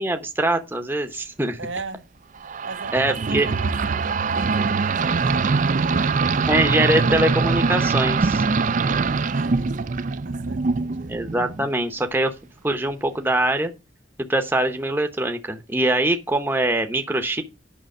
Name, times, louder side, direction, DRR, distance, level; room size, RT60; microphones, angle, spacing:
voice 1, 0.0-1.6 2.9-3.5 6.5-8.4 11.1-12.3 12.6-13.7 14.3-17.4, right 1 dB, 10° right, 0.9 m, -23 dB
voice 2, 1.6-2.0 2.6-6.7 6.9-7.1 9.1-11.1, right 3 dB, 80° right, 1.8 m, -39 dB
sound 1, 2.4-11.8, right 4 dB, 40° right, 0.5 m, -23 dB
9.0 x 6.0 x 5.4 m
head